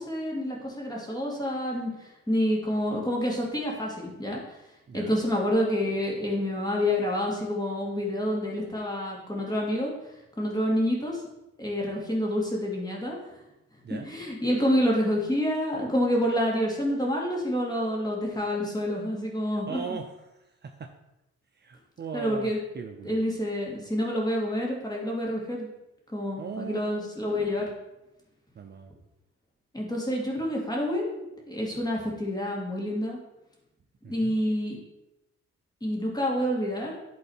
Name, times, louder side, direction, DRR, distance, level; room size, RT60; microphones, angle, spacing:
voice 1, 0.0-4.4 4.9-9.9 10.4-11.2 11.6-13.3 13.9-20.0 22.1-22.6 23.0-25.7 26.1-27.7 29.7-33.2 34.1-34.8 35.8-37.0, equal, 15° left, -2 dB, 2.6 m, -28 dB
voice 2, 4.9-5.2 13.8-14.1 19.7-20.0 20.3-20.9 21.6-23.2 26.4-27.1 28.6-28.9 34.0-34.4, right 6 dB, 35° right, 4 dB, 0.6 m, -39 dB
10.5 x 4.0 x 4.4 m, 0.93 s
cardioid pair, 90°, 30 cm